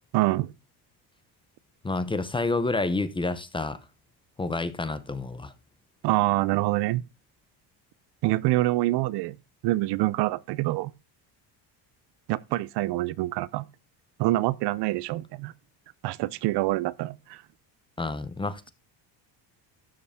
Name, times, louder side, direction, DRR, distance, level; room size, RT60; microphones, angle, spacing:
voice 1, 0.1-0.5 6.0-7.0 8.2-9.4 9.6-10.9 12.3-13.6 14.2-15.5 16.0-17.4, right 17 dB, 70° right, 0.6 m, -26 dB
voice 2, 1.8-3.8 4.4-5.5 18.0-18.7, left 3 dB, 10° left, 0.6 m, -29 dB
12.5 x 6.8 x 3.5 m
cardioid pair, 155°, 43 cm